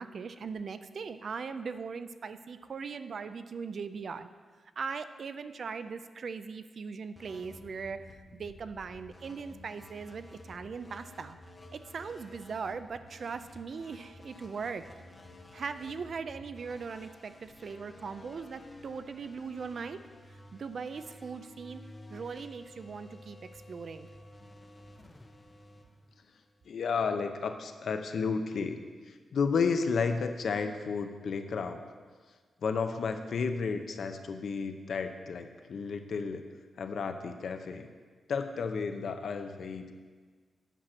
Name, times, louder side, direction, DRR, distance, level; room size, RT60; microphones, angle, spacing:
voice 1, 0.0-4.3 4.8-11.4 11.7-14.8 15.5-20.0 20.5-21.8 22.1-24.1, right 5 dB, 50° right, 11 dB, 0.4 m, -39 dB
sound 1, 7.2-26.7, left 1 dB, 20° left, 0.7 m, -52 dB
voice 2, 26.7-28.8 29.3-31.9 32.6-36.4 36.8-37.9 38.3-39.9, left 5 dB, 60° left, 7 dB, 0.6 m, -32 dB
9.0 x 5.9 x 6.2 m, 1.5 s
wide cardioid pair, 170°, 0 cm